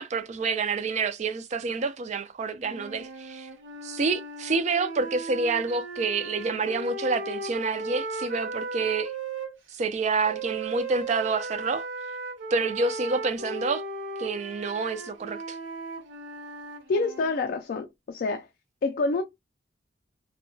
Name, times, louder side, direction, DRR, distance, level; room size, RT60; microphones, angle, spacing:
voice 1, 0.0-3.5 3.8-9.1 9.7-11.8 12.5-13.8 14.2-15.6, right 4 dB, 40° right, 0.4 m, -28 dB
sound 1, 2.6-9.5 10.2-17.4, right 2 dB, 85° right, 0.8 m, -37 dB
voice 2, 16.9-18.5 18.8-19.2, left 3 dB, 50° left, 0.3 m, -27 dB
2.7 x 2.1 x 2.6 m
head